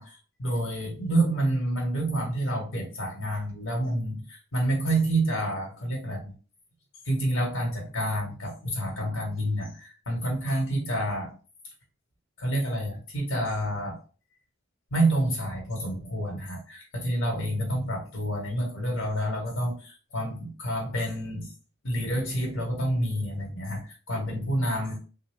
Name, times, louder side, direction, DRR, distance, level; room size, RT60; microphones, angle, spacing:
voice 1, 0.0-6.3 7.0-11.4 12.4-14.0 14.9-21.5 21.8-25.0, right 1 dB, 70° left, 0 dB, 1.4 m, -28 dB
3.7 x 2.2 x 3.5 m, 0.36 s
head